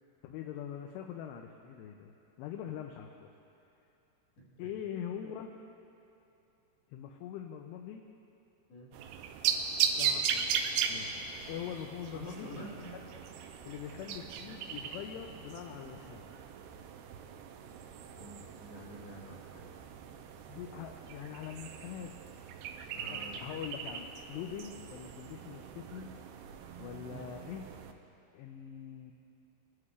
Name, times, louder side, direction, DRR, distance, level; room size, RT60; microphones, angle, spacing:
voice 1, 0.2-2.1 2.4-3.3 4.6-5.5 6.9-8.0 10.0-10.6 10.9-11.2 11.5-12.8 13.7-16.3 20.5-22.1 23.1-26.2 26.8-27.6 28.3-29.1, left 9 dB, 85° left, 3 dB, 2.7 m, -43 dB
voice 2, 4.4-4.7 8.7-8.9 12.1-12.9 18.0-19.7 22.9-23.5 27.1-27.3, equal, 70° left, -5 dB, 3.7 m, -48 dB
sound 1, 8.9-27.9, right 7 dB, 80° right, 2.4 m, -38 dB
20.0 x 11.0 x 2.4 m, 2.8 s
omnidirectional pair, 4.9 m